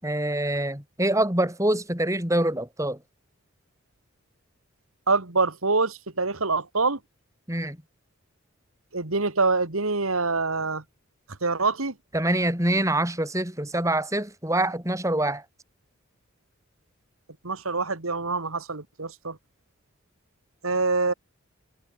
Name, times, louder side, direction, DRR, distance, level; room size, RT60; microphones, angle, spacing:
voice 1, 0.0-3.0 7.5-7.8 12.1-15.4, right 1 dB, 15° right, 6.4 m, -25 dB
voice 2, 5.1-7.0 8.9-10.8 11.4-11.9 17.4-19.4 20.6-21.1, right 3 dB, 75° right, 2.3 m, -25 dB
head